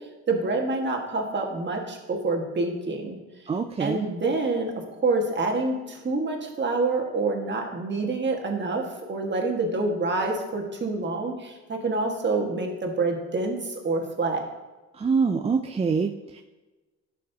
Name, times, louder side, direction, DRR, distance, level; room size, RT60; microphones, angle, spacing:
voice 1, 0.3-3.2 3.8-4.7 5.0-14.4, right 3 dB, 35° right, 1 dB, 1.6 m, -27 dB
voice 2, 3.5-4.0 15.0-16.4, right 5 dB, 20° right, 5 dB, 0.4 m, -25 dB
11.5 x 6.5 x 2.8 m, 1.2 s
cardioid pair, 90°, 30 cm